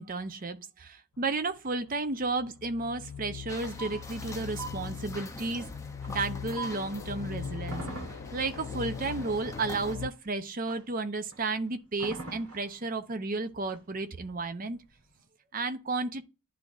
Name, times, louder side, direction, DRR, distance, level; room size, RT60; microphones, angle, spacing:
voice 1, 0.0-5.7 6.1-7.8 8.1-14.8 15.5-16.2, right 3 dB, 40° right, 0.7 m, -33 dB
sound 1, 1.3-10.1, left 7 dB, 75° left, 0.3 m, -40 dB
sound 2, 2.8-6.9 7.3-15.3, right 2 dB, 90° right, 1.6 m, -48 dB
sound 3, 3.5-9.9, equal, 15° left, 0.7 m, -43 dB
10.5 x 3.6 x 2.5 m
head